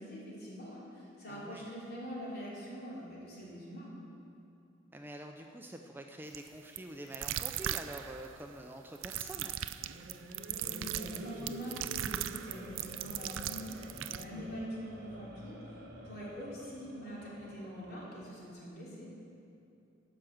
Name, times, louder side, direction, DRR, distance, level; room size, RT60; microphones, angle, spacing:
voice 1, 0.0-3.9 10.5-15.6 16.0-19.1, equal, 55° left, -6 dB, 3.3 m, -44 dB
voice 2, 1.3-1.6 4.9-9.5 14.3-14.6, right 1 dB, 10° right, 3 dB, 0.4 m, -46 dB
sound 1, 6.3-6.5 6.8-6.9 7.1-8.3 9.0-14.2, right 12 dB, 85° right, 0.4 m, -38 dB
sound 2, 9.7-18.4, equal, 55° right, 1.3 m, -50 dB
12.5 x 5.9 x 7.7 m, 2.7 s
head